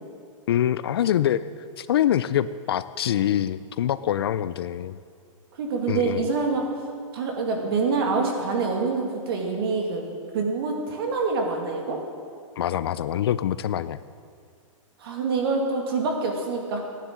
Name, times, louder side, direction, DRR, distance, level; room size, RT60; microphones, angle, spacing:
voice 1, 0.5-1.4 1.8-5.0 5.9-6.3 12.6-14.0, left 11 dB, 50° left, 15 dB, 0.4 m, -24 dB
voice 2, 5.6-6.6 7.1-10.0 10.3-12.0 15.0-16.8, right 4 dB, 45° right, 2 dB, 2.5 m, -26 dB
15.5 x 10.0 x 7.6 m, 2.3 s
hypercardioid pair, 175°, 17 cm